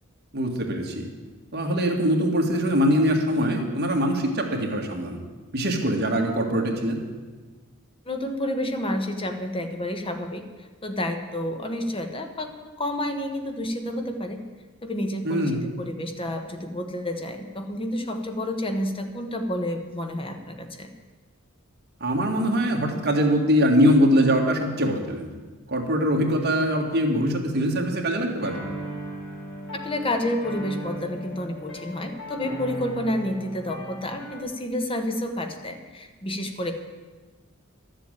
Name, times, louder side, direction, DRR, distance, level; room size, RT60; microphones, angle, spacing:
voice 1, 0.3-1.1 1.5-5.2 5.5-7.0 15.2-15.6 22.0-25.3 25.7-28.6, equal, 50° right, 1 dB, 1.9 m, -22 dB
voice 2, 8.1-10.4 10.8-12.5 12.8-14.4 14.8-20.9 29.8-36.7, left 1 dB, 25° left, 5 dB, 1.2 m, -29 dB
sound 1, 28.4-34.4, equal, 65° left, 4.1 m, -37 dB
12.0 x 7.5 x 9.0 m, 1.3 s
head